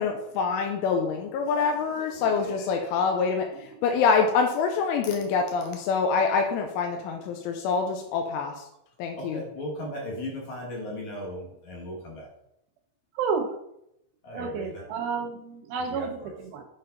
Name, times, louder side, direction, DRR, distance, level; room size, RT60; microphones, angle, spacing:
voice 1, 0.0-3.5 3.8-8.5 9.0-9.4, left 5 dB, 90° left, 3 dB, 3.2 m, -25 dB
voice 2, 2.2-2.8 9.2-12.3 14.2-14.9 15.9-16.3, left 1 dB, 60° left, -3 dB, 2.1 m, -37 dB
voice 3, 13.2-13.5 14.3-16.2 16.4-16.6, right 5 dB, 80° right, 2 dB, 2.1 m, -30 dB
7.9 x 5.3 x 3.9 m, 0.78 s
omnidirectional pair, 5.6 m